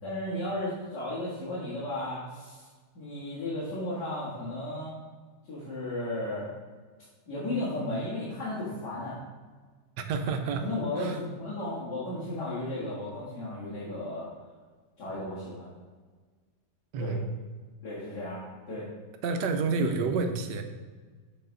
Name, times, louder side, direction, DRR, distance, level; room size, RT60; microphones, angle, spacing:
voice 1, 0.0-2.7 2.9-4.9 5.5-6.5 7.3-9.2 10.6-14.3 15.0-15.7 17.0-17.2 17.8-18.9 19.8-19.9, left 1 dB, 70° left, -10 dB, 2.3 m, -34 dB
voice 2, 10.1-10.6 11.0-11.2 12.7-12.9 16.9-17.2 19.2-20.6, right 4 dB, 90° right, 6 dB, 1.3 m, -29 dB
7.8 x 4.2 x 3.8 m, 1.4 s
omnidirectional pair, 1.8 m